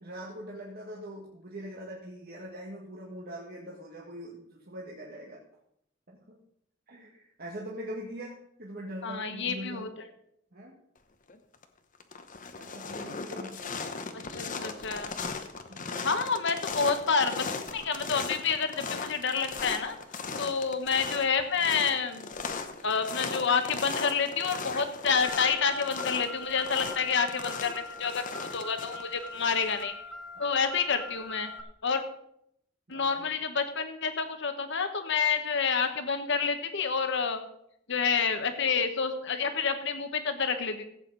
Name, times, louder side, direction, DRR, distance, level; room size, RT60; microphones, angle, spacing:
voice 1, 0.0-5.4 6.1-6.4 6.9-9.9 10.5-10.8 12.6-14.8 15.7-16.1 20.3-20.5 32.9-33.3, right 1 dB, 50° right, -3 dB, 1.8 m, -43 dB
voice 2, 9.0-10.1 14.1-15.1 16.0-17.5 17.7-19.9 20.4-22.3 22.8-29.9 30.4-31.5 31.8-32.0 32.9-37.4 37.9-40.9, left 5 dB, 65° left, 8 dB, 1.3 m, -28 dB
sound 1, 11.3-11.6 12.0-29.8, left 4 dB, 40° left, 1.0 m, -38 dB
Car, 25.2-31.6, left 2 dB, ahead, 1.1 m, -43 dB
16.0 x 8.3 x 4.1 m, 0.75 s
head